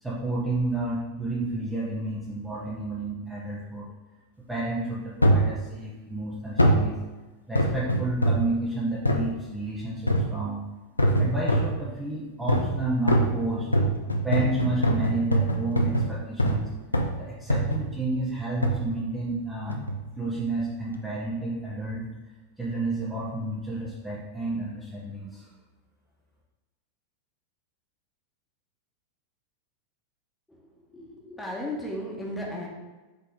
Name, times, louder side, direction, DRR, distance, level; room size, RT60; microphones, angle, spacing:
voice 1, 0.0-3.9 4.5-7.0 7.5-10.6 11.2-13.7 14.2-16.7 17.2-19.8 20.2-22.1 22.6-25.5, right 2 dB, 10° right, -6 dB, 1.0 m, -31 dB
sound 1, 5.2-5.5 6.6-6.9 7.5-8.5 9.0-9.3 10.1-10.4 11.0-11.8 12.5-12.8 13.1-16.6 16.9-17.2 17.5-17.9 18.6-18.8 19.7-20.0 20.6-20.7, right 1 dB, 85° left, 0.6 m, -23 dB
voice 2, 30.9-32.7, left 1 dB, 5° left, -3 dB, 1.4 m, -35 dB
7.5 x 3.5 x 3.5 m, 1.2 s
figure-of-eight pair, 90°, 0 cm